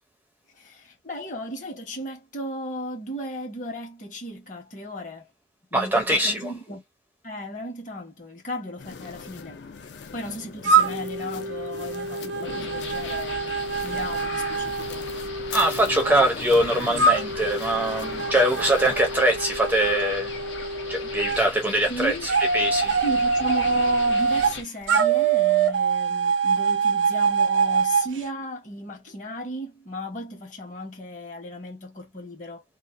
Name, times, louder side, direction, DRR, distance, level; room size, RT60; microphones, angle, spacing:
voice 1, 0.6-5.3 5.7-6.8 7.2-9.6 10.1-13.5 13.8-15.0 21.4-21.5 21.9-22.3 23.0-32.6, equal, 45° left, 0.9 m, -35 dB
voice 2, 5.7-6.5 15.5-20.3 20.9-22.9, right 1 dB, 10° right, 0.4 m, -23 dB
sound 1, 8.8-19.0, left 5 dB, 70° left, 0.4 m, -40 dB
sound 2, 10.6-16.2 17.0-21.4 22.3-24.5 24.9-28.1, right 5 dB, 80° right, 0.4 m, -24 dB
sound 3, 12.4-24.6, left 4 dB, 85° left, 0.8 m, -38 dB
2.3 x 2.3 x 2.4 m
head